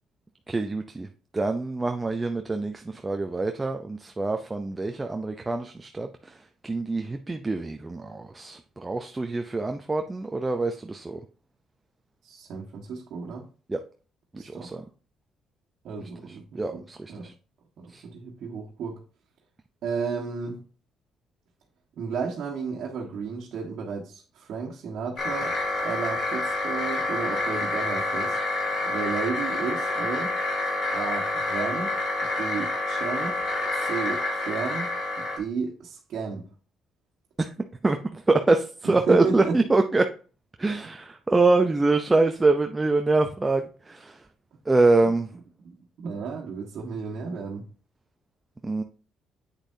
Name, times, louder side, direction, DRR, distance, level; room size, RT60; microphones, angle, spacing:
voice 1, 0.5-1.1 1.3-11.2 13.7-13.8 14.3-14.8 16.3-17.3 17.9-18.0 37.4-37.5 37.8-40.1 40.6-44.2 44.7-45.3 48.6-48.8, right 3 dB, 20° right, 5 dB, 0.6 m, -25 dB
voice 2, 12.2-13.4 14.3-14.8 15.8-17.3 17.8-19.0 19.8-20.6 21.9-25.6 25.8-28.4 28.8-30.3 30.9-31.9 32.4-33.4 33.8-34.9 35.4-36.4 38.8-39.6 45.6-47.6, right 5 dB, 65° right, -3 dB, 1.5 m, -33 dB
sound 1, 25.2-35.4, left 2 dB, 55° left, 2.8 m, -28 dB
8.2 x 6.3 x 2.7 m, 0.38 s
cardioid pair, 90°, 0 cm